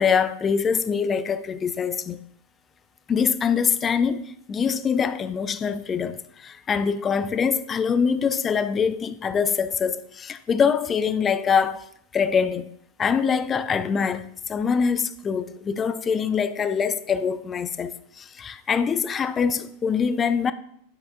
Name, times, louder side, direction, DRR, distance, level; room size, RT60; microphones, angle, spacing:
voice 1, 0.0-2.2 3.1-11.8 12.1-12.7 13.0-20.5, left 6 dB, 20° left, 0.4 m, -24 dB
8.8 x 7.9 x 2.6 m
figure-of-eight pair, 90°, 0 cm